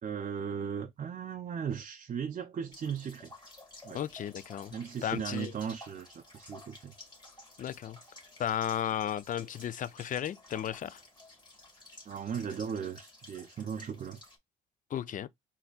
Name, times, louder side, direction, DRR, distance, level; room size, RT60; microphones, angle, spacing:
voice 1, 0.0-3.3 3.8-4.0 4.7-6.9 12.1-14.2, right 7 dB, 40° right, 0.5 m, -37 dB
sound 1, 2.7-14.4, left 2 dB, 20° left, 1.9 m, -53 dB
voice 2, 3.9-4.7 5.0-5.5 7.6-8.0 8.4-11.0 14.9-15.3, left 10 dB, 40° left, 0.4 m, -34 dB
4.0 x 2.7 x 2.3 m
cardioid pair, 90°, 20 cm